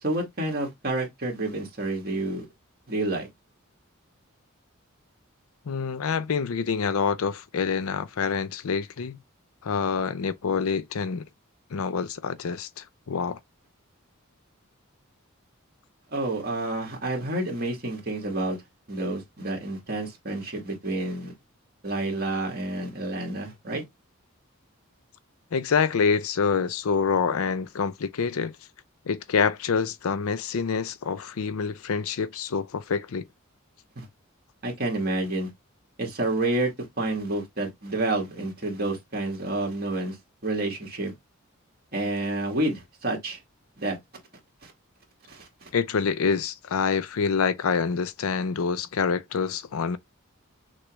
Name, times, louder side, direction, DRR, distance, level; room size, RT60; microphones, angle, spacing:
voice 1, 0.0-2.5 2.9-3.3 16.1-18.6 18.9-21.3 21.8-23.8 34.0-34.1 34.6-35.5 36.0-36.7 37.0-40.2 40.4-41.1 41.9-43.4 43.8-44.0 44.6-44.7 45.3-45.7, right 2 dB, 45° right, 1.8 m, -29 dB
voice 2, 5.7-9.2 9.6-11.3 11.7-13.4 25.5-28.5 29.1-33.3 45.7-50.0, left 5 dB, 80° left, 0.5 m, -26 dB
6.1 x 2.3 x 3.1 m
head